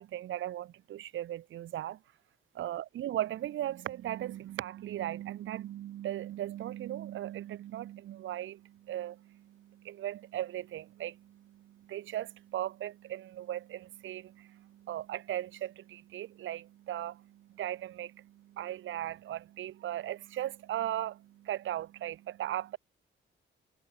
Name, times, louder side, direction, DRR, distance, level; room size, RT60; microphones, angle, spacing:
voice 1, 0.0-2.0 2.6-22.8, right 12 dB, 75° right, 4.0 m, -38 dB
cardioid pair, 90°, 20 cm